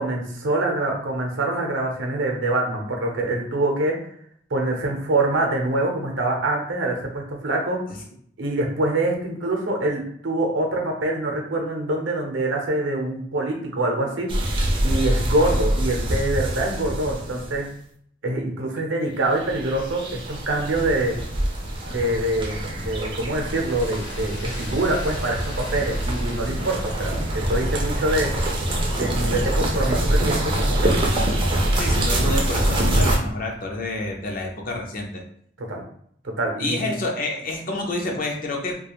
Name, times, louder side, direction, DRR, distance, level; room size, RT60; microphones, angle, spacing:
voice 1, 0.0-4.0 4.5-7.8 8.4-14.3 14.8-17.7 18.2-21.2 21.9-28.3 28.9-31.0 35.6-35.8 36.2-36.9, right 2 dB, 75° right, 1 dB, 0.6 m, -25 dB
sound 1, 14.3-17.6 19.4-33.2, right 1 dB, 25° right, 0.4 m, -24 dB
Tools, 23.4-32.1, left 1 dB, 65° left, 1.0 m, -45 dB
voice 2, 31.8-35.2 36.6-38.8, left 2 dB, 50° left, 1 dB, 0.6 m, -28 dB
2.4 x 2.2 x 2.9 m, 0.64 s
head